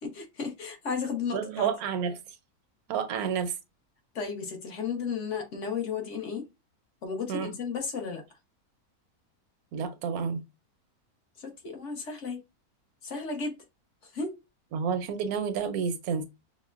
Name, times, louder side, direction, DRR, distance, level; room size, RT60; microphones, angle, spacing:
voice 1, 0.0-1.7 4.1-6.4 7.0-8.2 11.4-12.4 13.0-13.5 14.0-14.3, left 5 dB, 55° left, 1.2 m, -34 dB
voice 2, 1.3-2.2 2.9-3.6 7.3-7.5 9.7-10.4 14.7-16.3, right 6 dB, 80° right, 1.1 m, -30 dB
5.4 x 2.1 x 2.4 m
omnidirectional pair, 1.6 m